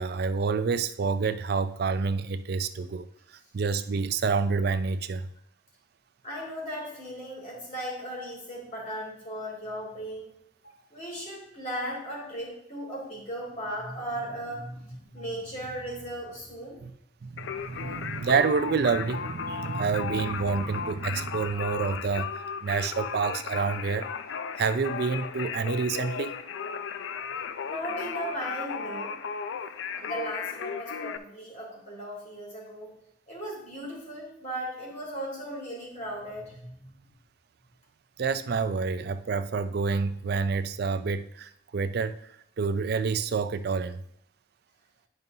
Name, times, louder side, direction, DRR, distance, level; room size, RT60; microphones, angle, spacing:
voice 1, 0.0-3.1 3.3-5.3 16.8-16.9 17.2-22.3 22.6-24.1 24.6-26.3 38.2-42.2 42.6-44.0, right 5 dB, 55° right, 0.4 m, -28 dB
voice 2, 6.2-10.3 10.6-16.8 27.6-29.2 30.0-32.9 33.3-37.0, equal, 40° left, 3.2 m, -37 dB
Singing, 17.4-31.2, left 6 dB, 75° left, 0.4 m, -35 dB
11.0 x 5.3 x 2.7 m
head